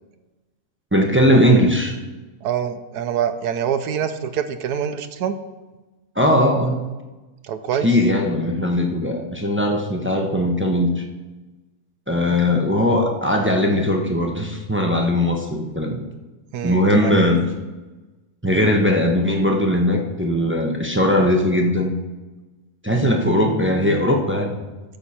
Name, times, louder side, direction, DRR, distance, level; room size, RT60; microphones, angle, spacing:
voice 1, 0.9-1.9 6.2-6.8 7.8-11.0 12.1-16.0 16.6-17.4 18.4-21.9 22.8-24.6, left 1 dB, 10° right, 2 dB, 0.7 m, -19 dB
voice 2, 2.4-5.4 7.4-7.9 16.5-17.1, right 8 dB, 90° right, 9 dB, 1.2 m, -25 dB
12.0 x 7.1 x 4.3 m, 1.2 s
omnidirectional pair, 1.7 m